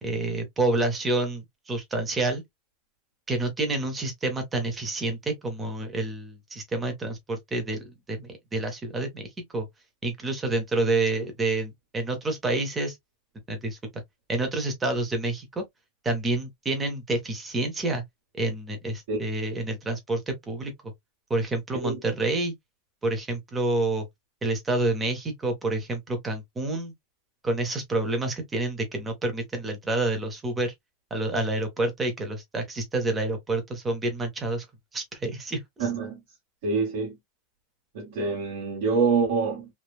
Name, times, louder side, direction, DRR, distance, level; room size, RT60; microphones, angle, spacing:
voice 1, 0.0-2.4 3.3-9.2 9.5-9.7 10.0-12.9 13.5-13.8 14.3-15.6 16.0-18.0 18.4-20.9 21.3-22.5 23.0-24.1 24.4-26.9 27.4-30.7 31.1-34.6 34.9-35.9, right 2 dB, 10° right, 0.7 m, -28 dB
voice 2, 35.8-36.2 36.6-37.1 37.9-39.7, right 4 dB, 50° right, 1.2 m, -26 dB
3.1 x 2.2 x 2.3 m
supercardioid pair, 180°, 0 cm